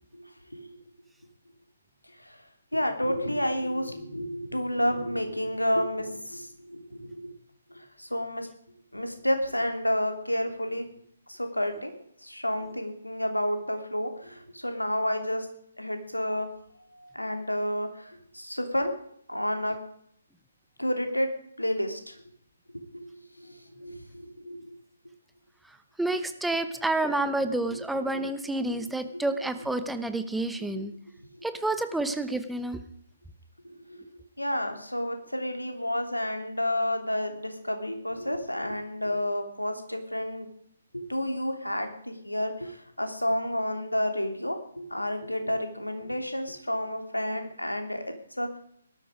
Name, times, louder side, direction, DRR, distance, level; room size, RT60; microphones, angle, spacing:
voice 1, 0.1-0.8 2.2-2.4 2.7-7.3 7.7-8.5 8.9-10.9 11.3-11.9 12.2-15.5 15.8-16.5 16.9-18.9 19.3-19.8 20.8-22.2 22.7-24.8 27.7-27.8 28.7-28.8 29.1-29.2 31.2-31.3 33.6-40.5 40.9-48.6, equal, 90° left, 6 dB, 3.0 m, -30 dB
voice 2, 26.0-30.9 31.4-32.8, right 2 dB, 5° right, 9 dB, 1.0 m, -29 dB
18.5 x 13.0 x 5.0 m, 0.67 s
figure-of-eight pair, 140°, 0 cm